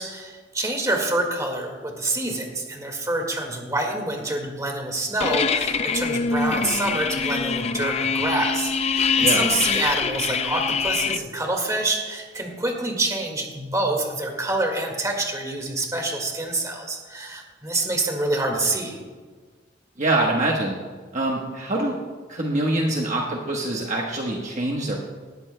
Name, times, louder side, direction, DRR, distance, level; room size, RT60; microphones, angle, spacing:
voice 1, 0.0-19.0, right 2 dB, 15° right, 2 dB, 1.9 m, -26 dB
sound 1, 5.2-11.2, left 5 dB, 35° left, 0.4 m, -24 dB
voice 2, 20.0-20.8 21.1-22.0 22.3-25.0, right 2 dB, 40° right, -1 dB, 1.2 m, -24 dB
18.5 x 13.5 x 2.2 m, 1.5 s
head